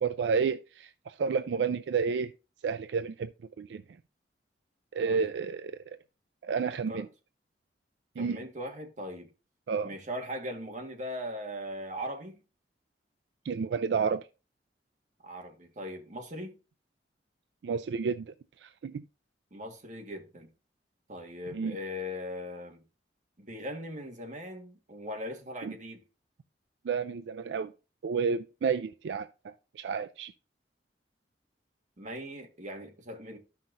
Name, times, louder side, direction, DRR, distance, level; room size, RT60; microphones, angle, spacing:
voice 1, 0.0-2.3 2.6-3.3 3.6-3.8 4.9-6.0 6.4-7.1 8.2-8.4 9.7-9.9 13.4-14.2 17.6-18.3 18.6-19.0 21.5-21.8 25.6-25.7 26.8-27.7 28.0-30.3, right 5 dB, 75° right, 0.3 m, -31 dB
voice 2, 5.0-5.3 6.9-7.0 8.2-9.3 9.8-12.4 15.2-16.6 19.5-20.5 21.1-22.8 23.4-26.0 32.0-33.4, equal, 45° right, 1.5 m, -39 dB
13.5 x 5.7 x 2.5 m
head